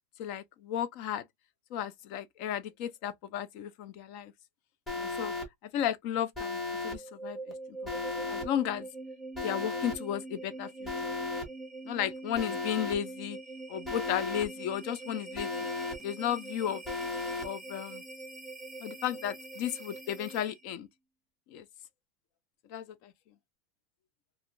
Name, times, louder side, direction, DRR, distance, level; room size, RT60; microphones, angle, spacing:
voice 1, 0.2-1.2 1.7-4.3 5.0-5.3 5.6-8.9 9.4-11.1 11.8-13.4 13.7-15.7 16.0-16.8 17.4-18.0 18.8-20.9 21.5-21.7 22.7-23.1, left 10 dB, 45° left, 0.4 m, -34 dB
Alarm, 4.9-5.4 6.3-6.9 7.8-8.4 9.3-9.9 10.8-11.4 12.3-12.9 13.8-14.4 15.3-15.9 16.8-17.4, left 3 dB, 15° left, 1.1 m, -35 dB
sound 1, 6.8-20.8, right 2 dB, ahead, 0.8 m, -44 dB
2.5 x 2.3 x 2.9 m
supercardioid pair, 155°, 0 cm